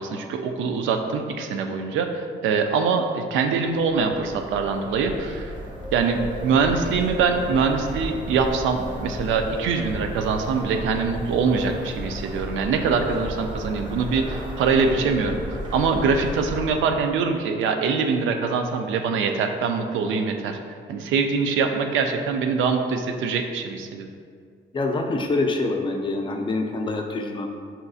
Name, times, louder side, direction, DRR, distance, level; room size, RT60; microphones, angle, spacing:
voice 1, 0.0-5.5 5.9-15.4 15.7-20.6 20.9-24.1, right 5 dB, 80° right, 5 dB, 0.4 m, -23 dB
sound 1, 3.7-17.2, equal, 25° right, 0.9 m, -34 dB
Wind, 5.7-9.3 9.8-11.1 11.6-11.7, left 1 dB, 10° left, 0.9 m, -38 dB
voice 2, 24.7-27.5, left 2 dB, 25° left, 2 dB, 0.4 m, -25 dB
5.6 x 2.5 x 2.4 m, 2.1 s
cardioid pair, 90°, 20 cm